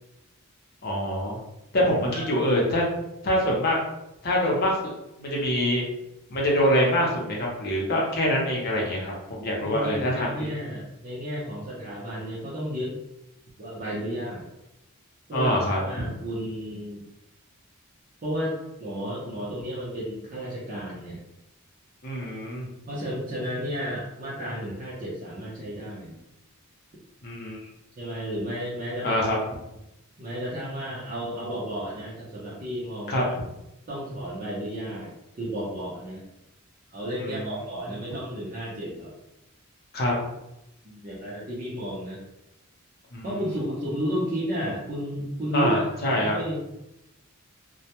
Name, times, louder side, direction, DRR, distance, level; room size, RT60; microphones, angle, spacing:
voice 1, 0.8-1.4 1.7-2.8 3.2-3.8 4.2-4.9 5.2-5.8 6.3-10.5 15.3-15.8 22.0-22.7 27.2-27.6 29.0-29.4 33.1-33.2 37.2-37.6 39.9-40.2 43.1-43.5 45.5-46.4, equal, 45° left, -3 dB, 0.6 m, -25 dB
voice 2, 2.1-2.5 9.6-13.0 13.6-14.5 15.3-15.5 15.8-17.0 18.2-21.2 22.9-26.2 28.0-29.3 30.2-33.3 33.9-36.2 36.9-39.1 40.8-42.3 43.2-45.7 46.0-46.6, equal, 40° right, -7 dB, 0.5 m, -32 dB
2.2 x 2.0 x 2.8 m, 0.88 s
head